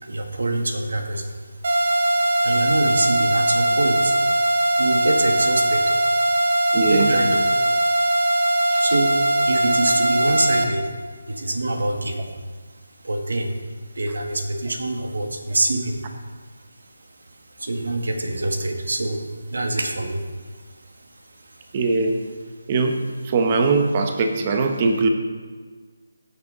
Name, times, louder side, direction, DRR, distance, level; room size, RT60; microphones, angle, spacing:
voice 1, 0.0-1.5 1.9-2.1 2.4-4.4 4.7-6.1 6.6-7.4 8.1-8.4 8.8-11.0 11.3-13.6 13.9-16.0 16.4-16.5 16.8-16.9 17.3-21.7, right 2 dB, 85° right, 4 dB, 2.0 m, -26 dB
sound 1, 1.6-10.6, right 1 dB, 50° right, 1.8 m, -20 dB
voice 2, 6.7-7.1 8.7-8.8 21.7-22.2 22.7-23.0 23.2-25.1, right 3 dB, 30° right, 4 dB, 1.2 m, -21 dB
15.5 x 8.7 x 4.1 m, 1.5 s
figure-of-eight pair, 165°, 0 cm